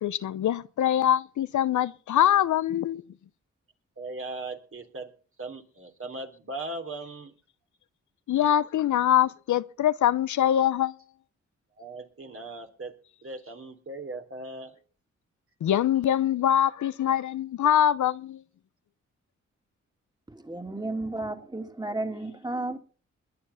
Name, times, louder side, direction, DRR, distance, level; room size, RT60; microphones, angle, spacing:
voice 1, 0.0-3.0 8.3-11.0 15.6-18.4, left 10 dB, 80° left, 0.8 m, -24 dB
voice 2, 4.0-5.1 5.4-7.3 11.8-12.9 13.2-14.7, right 2 dB, 45° right, 3.3 m, -38 dB
voice 3, 20.3-22.8, right 2 dB, 15° right, 2.8 m, -33 dB
21.0 x 9.6 x 5.7 m
cardioid pair, 60°, 29 cm